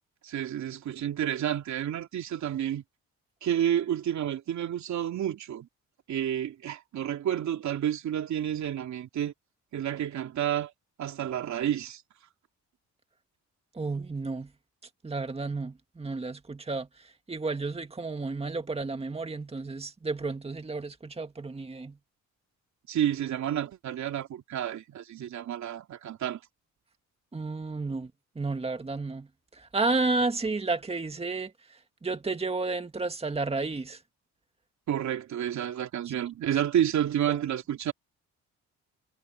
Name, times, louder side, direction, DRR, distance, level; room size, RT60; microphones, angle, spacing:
voice 1, 0.2-2.8 3.4-5.7 6.1-9.3 9.7-10.7 11.0-12.0 22.9-26.4 34.9-37.9, right 10 dB, 65° right, 3.1 m, -30 dB
voice 2, 13.7-14.5 15.0-22.0 27.3-28.1 28.4-34.0 37.3-37.4, right 3 dB, 20° right, 2.1 m, -32 dB
cardioid pair, 90°, 30 cm